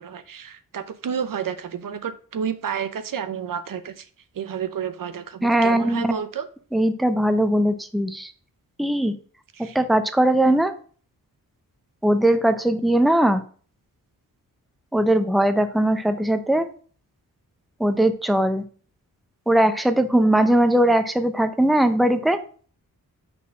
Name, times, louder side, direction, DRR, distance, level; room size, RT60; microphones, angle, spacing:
voice 1, 0.0-4.1 4.3-6.5 9.5-9.8, right 7 dB, 65° right, 11 dB, 0.7 m, -30 dB
voice 2, 5.4-6.1 6.7-8.3 8.8-9.1 9.6-10.7 12.0-13.4 14.9-16.7 17.8-18.6 19.5-22.4, right 1 dB, ahead, 9 dB, 0.8 m, -20 dB
6.0 x 4.1 x 6.1 m, 0.43 s
cardioid pair, 65°, 36 cm